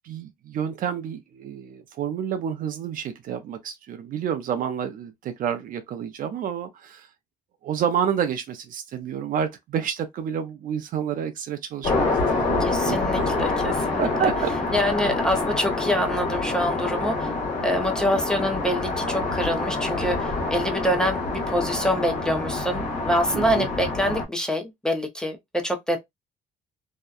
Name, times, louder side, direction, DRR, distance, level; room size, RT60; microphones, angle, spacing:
voice 1, 0.0-7.1 7.6-12.1 12.4-13.0 14.0-14.6 14.8-15.2 23.3-23.7, right 8 dB, 55° right, 0.5 m, -29 dB
sound 1, 11.8-24.2, left 3 dB, 45° left, 1.1 m, -26 dB
voice 2, 12.6-14.3 14.7-17.3 17.6-26.0, equal, 5° left, 0.6 m, -26 dB
2.7 x 2.1 x 2.3 m
cardioid pair, 110°, 17 cm